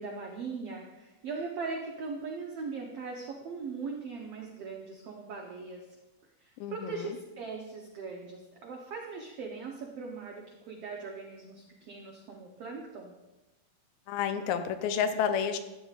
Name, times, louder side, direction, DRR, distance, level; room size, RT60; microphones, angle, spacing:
voice 1, 0.0-5.9 6.4-13.1, right 4 dB, 90° right, 0 dB, 1.3 m, -40 dB
voice 2, 6.6-7.2 14.1-15.6, left 7 dB, 85° left, 8 dB, 2.3 m, -30 dB
13.5 x 8.9 x 2.4 m, 1.0 s
omnidirectional pair, 3.9 m